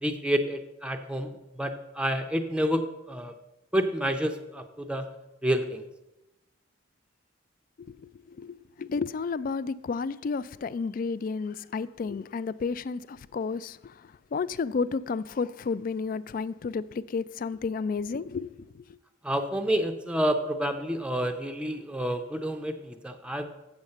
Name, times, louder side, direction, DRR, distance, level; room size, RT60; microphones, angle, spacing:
voice 1, 0.0-3.3 3.7-5.1 5.4-5.8 19.2-23.5, equal, 5° right, 0.5 m, -29 dB
voice 2, 8.4-13.8 14.3-18.5, left 4 dB, 45° left, 0.3 m, -31 dB
7.3 x 7.1 x 6.5 m
head